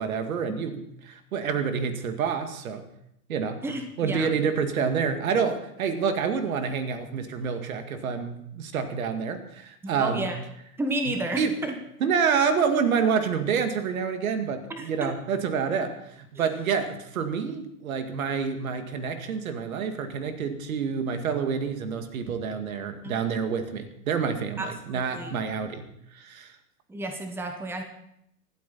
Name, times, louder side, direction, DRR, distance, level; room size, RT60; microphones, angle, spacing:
voice 1, 0.0-2.9 3.3-3.6 4.0-10.3 11.1-11.6 12.0-25.9 26.1-26.5, right 6 dB, 60° right, 7 dB, 2.2 m, -28 dB
voice 2, 3.6-4.3 10.0-10.4 10.8-11.7 14.7-15.1 16.3-16.5 24.6-25.3 26.9-27.8, right 1 dB, 5° right, 5 dB, 1.3 m, -31 dB
25.5 x 8.7 x 4.2 m, 0.76 s
hypercardioid pair, 120°, 47 cm